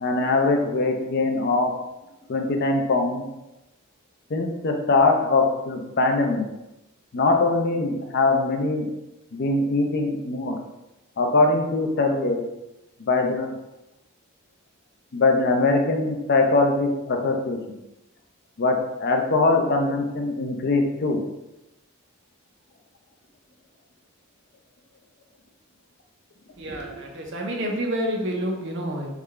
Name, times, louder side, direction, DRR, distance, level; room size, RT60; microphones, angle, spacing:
voice 1, 0.0-1.7 2.3-3.2 4.3-6.4 7.1-8.9 9.3-10.6 11.2-12.4 13.0-13.5 15.1-17.6 18.6-21.2, left 3 dB, 50° left, 3 dB, 0.4 m, -22 dB
voice 2, 26.6-29.1, right 1 dB, 60° right, 1 dB, 0.6 m, -28 dB
3.6 x 2.3 x 3.2 m, 0.93 s
head